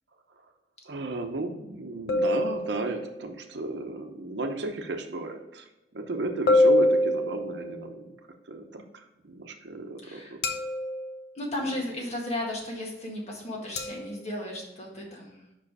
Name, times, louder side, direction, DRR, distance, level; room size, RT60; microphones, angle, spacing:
voice 1, 0.9-5.7 5.9-8.1 8.5-10.4 11.6-11.8, right 2 dB, 75° right, 5 dB, 0.8 m, -34 dB
sound 1, 2.1-3.2 6.5-7.9 10.4-11.2 13.8-14.1, left 1 dB, 65° left, 0.7 m, -24 dB
voice 2, 10.0-10.3 11.4-15.3, left 1 dB, 40° left, -1 dB, 1.7 m, -34 dB
5.6 x 4.9 x 4.8 m, 0.97 s
head